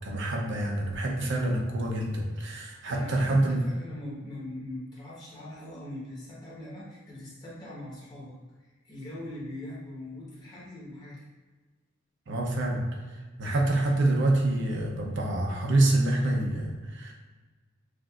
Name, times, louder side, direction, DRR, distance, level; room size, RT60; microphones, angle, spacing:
voice 1, 0.0-3.6 12.3-12.9 13.4-17.1, right 2 dB, 65° right, -1 dB, 0.7 m, -26 dB
voice 2, 2.9-11.3, left 1 dB, 20° left, -6 dB, 1.2 m, -42 dB
6.0 x 2.6 x 2.4 m, 1.3 s
head